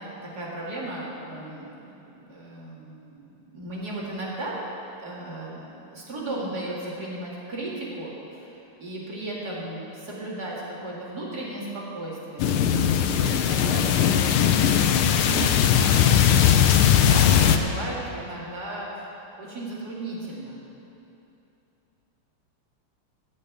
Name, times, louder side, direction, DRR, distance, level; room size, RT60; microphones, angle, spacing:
voice 1, 0.0-4.5 5.0-12.8 13.1-16.1 16.7-19.1 19.4-20.6, right 1 dB, 50° right, -6 dB, 2.7 m, -36 dB
sound 1, 12.4-17.6, left 9 dB, 90° left, 1.6 m, -19 dB
14.5 x 5.5 x 8.7 m, 2.9 s
omnidirectional pair, 2.3 m